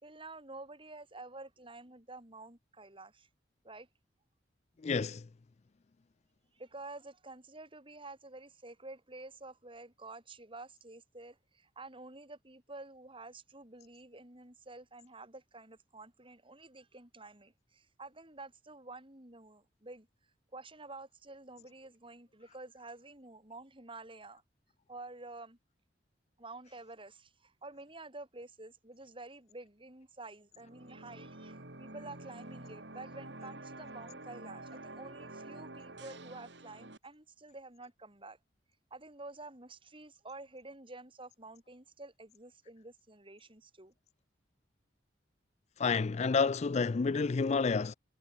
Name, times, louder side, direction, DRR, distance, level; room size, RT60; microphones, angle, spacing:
voice 1, 0.0-3.3 3.6-3.9 6.5-24.4 24.9-25.6 26.4-38.4 38.9-43.9, right 2 dB, 30° right, 4.5 m, -50 dB
voice 2, 4.8-5.3 45.8-47.9, left 4 dB, 40° left, 0.4 m, -29 dB
sound 1, 30.6-37.0, right 2 dB, 70° right, 3.5 m, -48 dB
head